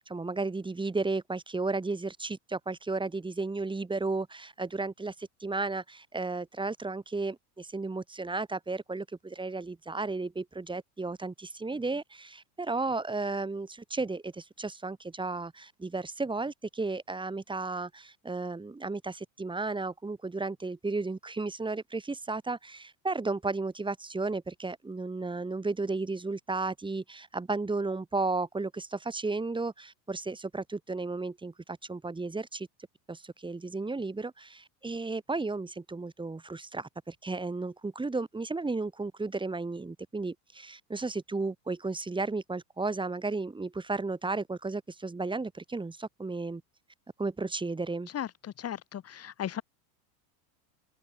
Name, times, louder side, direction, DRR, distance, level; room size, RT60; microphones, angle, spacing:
voice 1, 0.1-32.7 33.1-46.6 47.2-48.1, right 3 dB, 10° right, 2.3 m, -34 dB
voice 2, 48.1-49.6, left 10 dB, 30° left, 2.6 m, -36 dB
open air
supercardioid pair, 120°, 50 cm